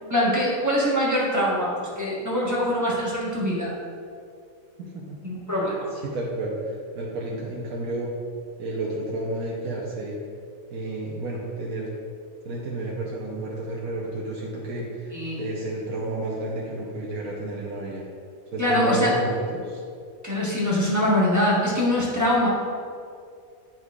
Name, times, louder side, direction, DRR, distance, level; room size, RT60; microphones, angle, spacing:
voice 1, 0.0-3.7 5.2-5.9 15.1-15.4 18.6-19.1 20.2-22.5, left 1 dB, 15° right, -6 dB, 1.2 m, -23 dB
voice 2, 4.8-5.2 5.6-8.1 8.6-10.2 10.7-11.9 12.4-18.0 18.5-19.8, right 2 dB, 90° right, -4 dB, 1.2 m, -31 dB
8.1 x 5.9 x 2.4 m, 2.3 s
omnidirectional pair, 1.4 m